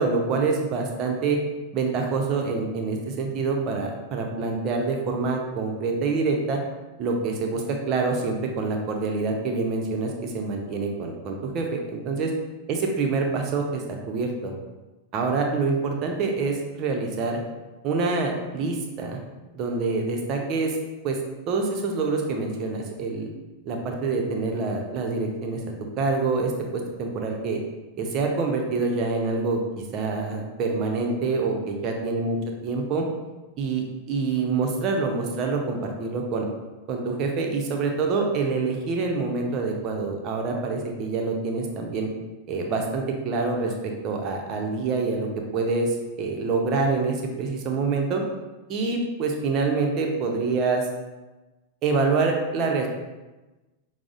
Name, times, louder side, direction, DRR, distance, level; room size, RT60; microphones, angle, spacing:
voice 1, 0.0-1.4 1.7-6.6 7.0-12.3 12.7-14.5 15.1-17.4 17.8-19.2 19.5-20.8 21.0-21.2 21.5-23.3 23.7-25.6 26.0-27.6 28.0-29.6 29.9-31.6 31.8-32.3 32.6-33.0 33.6-36.5 36.9-42.1 42.5-45.3 45.5-48.2 48.7-50.9 51.8-52.9, right 4 dB, 35° right, 1 dB, 0.6 m, -26 dB
5.9 x 2.0 x 2.5 m, 1.1 s
figure-of-eight pair, 90°, 0 cm